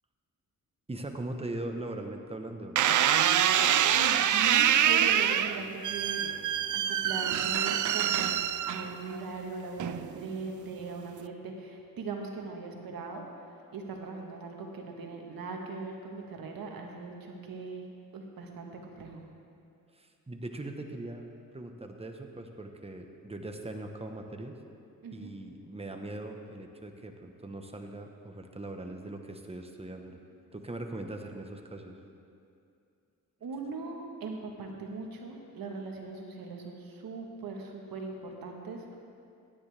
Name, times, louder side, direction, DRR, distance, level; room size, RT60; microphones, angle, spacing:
voice 1, 0.9-2.7 19.9-21.3 21.5-24.6 25.1-30.2 30.5-32.0, right 2 dB, 15° right, 4 dB, 1.2 m, -40 dB
sound 1, 2.8-9.2 9.8-10.3, right 10 dB, 55° right, 0.5 m, -25 dB
voice 2, 3.9-6.4 6.7-8.4 8.7-17.9 18.1-19.2 25.0-25.3 33.4-39.0, right 3 dB, 75° right, 2 dB, 1.5 m, -40 dB
16.0 x 10.0 x 3.5 m, 2.5 s
cardioid pair, 70°, 35 cm